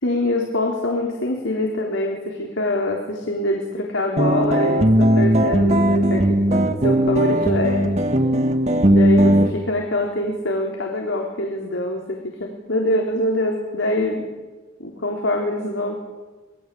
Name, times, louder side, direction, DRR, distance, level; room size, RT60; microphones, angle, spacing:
voice 1, 0.0-8.0 8.9-14.2 14.8-16.0, left 1 dB, 85° left, 0 dB, 4.1 m, -24 dB
sound 1, 4.2-9.5, equal, 35° right, 1.6 m, -17 dB
26.0 x 21.5 x 8.7 m, 1.2 s
head